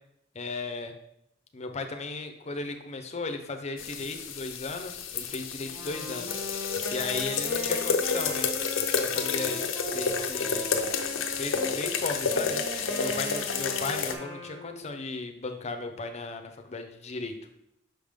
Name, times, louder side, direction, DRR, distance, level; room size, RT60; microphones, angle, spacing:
voice 1, 0.3-0.9 1.5-6.4 6.9-8.5 8.9-10.8 11.4-12.6 12.9-17.4, left 3 dB, 35° left, 6 dB, 0.7 m, -36 dB
sound 1, 3.8-14.1, left 5 dB, 90° left, 0.7 m, -30 dB
Wind instrument woodwind instrument, 5.6-11.8 12.3-14.9, equal, 20° right, 2.0 m, -39 dB
5.9 x 5.1 x 3.6 m, 0.78 s
head